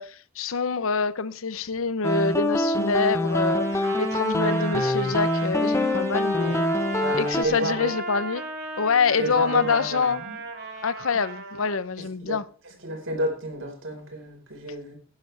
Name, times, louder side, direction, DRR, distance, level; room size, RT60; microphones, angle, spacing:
voice 1, 0.0-6.7 7.2-8.4 8.8-10.2 10.8-12.4, left 5 dB, 85° left, 0.8 m, -26 dB
sound 1, 2.0-7.4, left 1 dB, 15° left, 1.1 m, -25 dB
Trumpet, 3.2-11.8, right 3 dB, 55° right, 3.1 m, -36 dB
voice 2, 7.0-7.9 9.2-10.4 12.2-12.4 12.8-14.9, right 1 dB, 70° right, 4.6 m, -30 dB
16.5 x 11.0 x 3.4 m
head